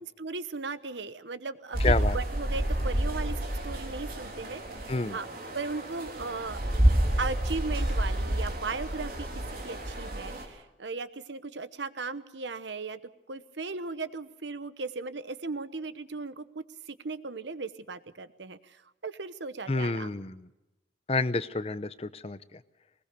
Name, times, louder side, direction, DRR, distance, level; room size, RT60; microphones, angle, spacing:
voice 1, 0.0-5.3 5.5-6.6 7.2-9.3 9.6-13.0 13.3-18.8 19.0-20.1, right 4 dB, 80° right, 14 dB, 1.0 m, -37 dB
sound 1, 1.7-10.4, right 1 dB, 50° right, 3.7 m, -29 dB
voice 2, 1.8-2.2 4.9-5.2 19.7-20.5 21.1-22.6, left 3 dB, 35° left, 14 dB, 0.6 m, -29 dB
20.5 x 20.5 x 6.7 m, 1.0 s
head